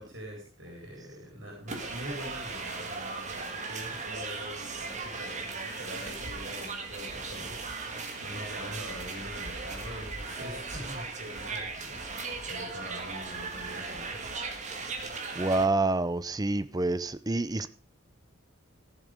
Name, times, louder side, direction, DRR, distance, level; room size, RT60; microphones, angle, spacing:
voice 1, 0.0-14.2, equal, 60° right, 4.3 m, -43 dB
sound 1, 1.7-15.6, right 3 dB, 35° right, 1.9 m, -37 dB
voice 2, 15.4-17.7, right 2 dB, 20° right, 0.6 m, -27 dB
14.5 x 7.4 x 5.1 m
head